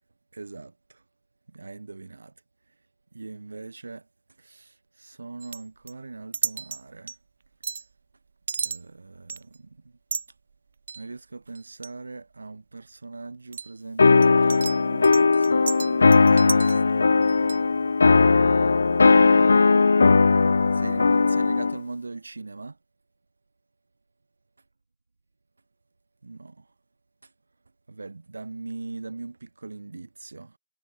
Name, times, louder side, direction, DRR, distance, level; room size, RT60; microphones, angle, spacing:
voice 1, 0.3-1.0 1.5-2.3 2.7-2.9 3.1-7.2 8.6-10.0 10.3-10.4 10.9-17.3 18.6-19.9 20.7-22.8 26.2-26.7 27.2-27.3 27.9-30.6, right 3 dB, 80° right, 5.9 m, -41 dB
sound 1, 5.4-5.9 6.3-6.8 7.1-7.2 7.6-7.8 8.5-8.8 9.3-9.6 10.1-10.3 10.9-11.0 11.6-11.9 13.5-13.7 14.2-16.9 17.2-17.6, right 5 dB, 60° right, 2.5 m, -32 dB
sound 2, 14.0-21.8, left 4 dB, 70° left, 1.0 m, -18 dB
figure-of-eight pair, 140°, 0 cm